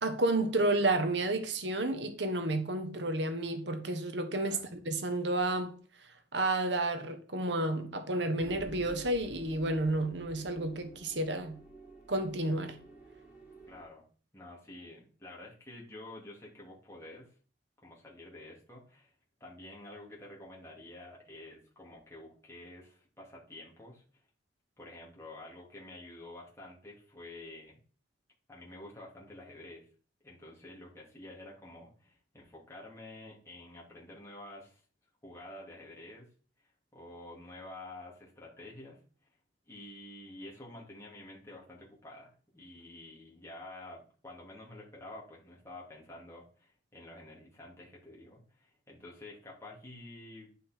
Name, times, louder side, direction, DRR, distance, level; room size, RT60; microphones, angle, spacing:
voice 1, 0.0-5.8 6.3-11.6 12.1-12.8, right 2 dB, 70° right, 1.3 m, -31 dB
sound 1, 8.4-13.8, right 1 dB, 10° right, 4.2 m, -51 dB
voice 2, 13.7-14.0 14.3-17.3 17.8-19.1 19.4-24.0 24.8-27.8 28.5-29.8 30.2-34.8 35.2-36.3 36.9-39.0 39.7-50.5, left 1 dB, 15° left, 2.8 m, -49 dB
9.7 x 5.6 x 4.5 m
head